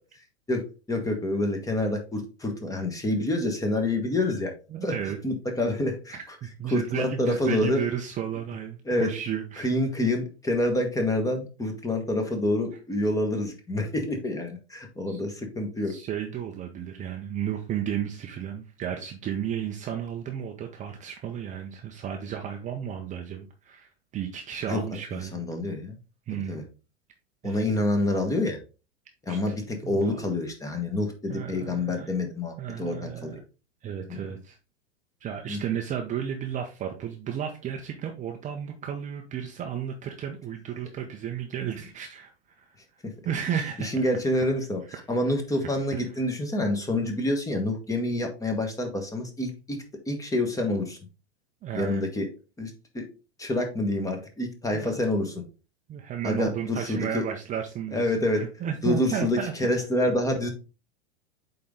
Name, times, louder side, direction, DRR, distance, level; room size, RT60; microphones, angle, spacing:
voice 1, 0.9-4.5 4.8-4.9 5.2-6.2 6.7-7.8 8.8-9.1 9.6-15.9 24.7-24.8 25.3-26.0 26.3-26.6 27.4-28.6 29.2-33.4 34.1-34.2 35.5-35.6 43.8-44.8 45.1-49.8 50.1-51.0 51.7-52.3 52.6-53.0 53.4-55.4 56.2-57.3 57.9-58.4 58.8-60.5, left 1 dB, 10° left, 4 dB, 1.4 m, -27 dB
voice 2, 4.7-5.2 6.1-9.7 15.1-15.2 15.8-25.4 26.3-26.6 27.4-27.7 29.3-29.6 29.8-30.0 31.3-32.1 32.6-33.4 33.8-34.6 35.2-42.8 43.2-44.1 51.6-52.0 54.7-54.9 55.9-59.5 60.0-60.1, right 9 dB, 20° right, 4 dB, 0.8 m, -33 dB
8.4 x 3.8 x 3.7 m, 0.33 s
figure-of-eight pair, 100°, 33 cm